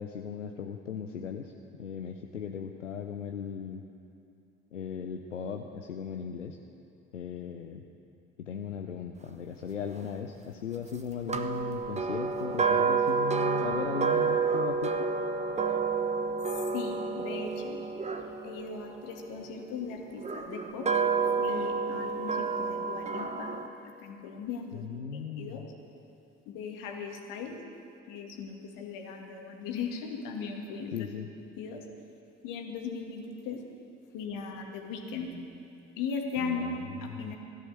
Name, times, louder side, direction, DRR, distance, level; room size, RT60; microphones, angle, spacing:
voice 1, 0.0-1.5 1.8-3.8 4.7-6.6 7.1-7.8 8.4-15.1 24.7-25.6 30.9-31.3 36.4-37.3, left 6 dB, 90° left, 4 dB, 0.6 m, -37 dB
sound 1, 11.3-19.5 20.2-23.7, right 5 dB, 20° right, 1.0 m, -29 dB
voice 2, 16.7-17.8 18.4-20.9 21.4-23.5 24.0-24.9 25.4-25.6 26.5-27.6 28.1-31.1 31.6-31.8 32.4-33.6 34.1-35.3 36.0-36.7 37.0-37.4, left 5 dB, 60° left, 2 dB, 2.1 m, -38 dB
16.0 x 12.0 x 6.6 m, 2.6 s
figure-of-eight pair, 55°, 36 cm